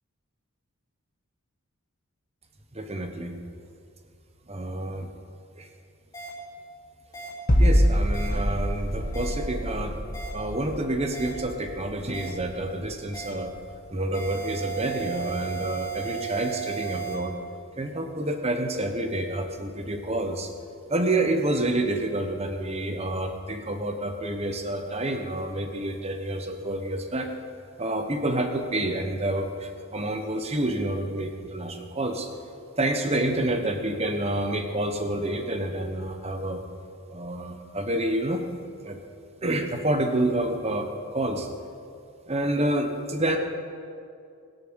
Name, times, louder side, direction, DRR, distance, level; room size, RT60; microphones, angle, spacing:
voice 1, 2.7-3.4 4.5-5.1 5.6-5.7 7.6-10.0 10.3-13.5 13.9-17.4 17.8-20.5 20.9-27.3 27.8-32.3 32.8-36.6 37.1-38.5 38.8-39.0 39.4-41.5 42.3-43.4, right 1 dB, 30° right, 5 dB, 1.1 m, -28 dB
sound 1, 6.1-6.3 7.1-7.3 8.1-8.3 9.1-9.3 10.1-10.3 11.1-11.3 12.1-12.3 13.1-13.3 14.1-17.1, right 7 dB, 15° left, 3.7 m, -35 dB
sound 2, 7.5-13.2 13.4-13.7, equal, 40° left, 1.3 m, -25 dB
21.0 x 6.9 x 6.3 m, 2.4 s
head